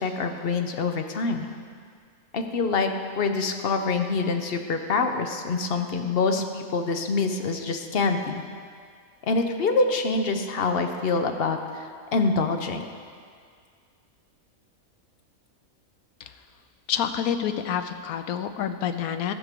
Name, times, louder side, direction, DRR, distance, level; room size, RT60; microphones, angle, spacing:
voice 1, 0.0-1.5 2.3-8.3 9.2-12.9, left 4 dB, 50° left, 5 dB, 0.8 m, -25 dB
voice 2, 16.9-19.3, left 9 dB, 85° left, 9 dB, 1.1 m, -28 dB
14.0 x 4.8 x 6.7 m, 2.1 s
omnidirectional pair, 1.5 m